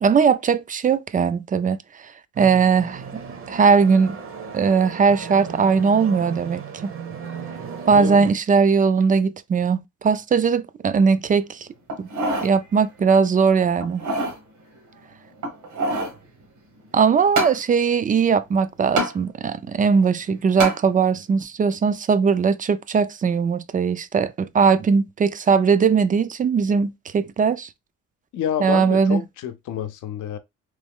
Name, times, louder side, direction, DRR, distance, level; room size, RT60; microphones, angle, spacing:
voice 1, 0.0-1.8 2.4-3.2 3.5-4.2 4.5-6.6 7.9-11.7 12.0-12.1 12.4-14.1 16.9-27.7 28.6-29.2, right 5 dB, 30° right, 0.3 m, -19 dB
sound 1, 2.4-8.3, right 6 dB, 45° right, 0.7 m, -35 dB
sound 2, 11.9-12.5 13.0-13.1 13.8-14.4 15.4-16.2 17.4-17.6 19.0-19.1 20.6-20.8 21.4-21.5, right 2 dB, 75° right, 1.3 m, -25 dB
voice 2, 28.3-30.4, left 9 dB, 80° left, 0.6 m, -28 dB
3.2 x 2.3 x 3.6 m
cardioid pair, 90°, 30 cm